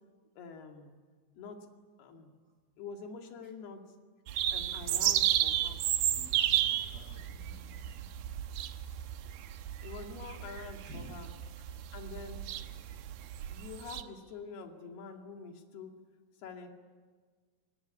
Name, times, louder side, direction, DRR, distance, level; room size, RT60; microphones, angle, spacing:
voice 1, 0.4-1.0 1.4-1.7 2.0-2.3 2.8-3.8 4.5-5.8 9.8-11.3 11.9-12.4 13.5-16.0 16.4-16.7, left 5 dB, 60° left, 3 dB, 4.0 m, -46 dB
sound 1, 4.3-14.0, right 12 dB, 70° right, 2.6 m, -33 dB
voice 2, 4.6-5.1 6.1-6.2 6.5-8.2 9.3-10.1 10.8-11.1, equal, 25° right, 4 dB, 5.2 m, -54 dB
24.5 x 21.5 x 9.9 m, 1.5 s
omnidirectional pair, 5.5 m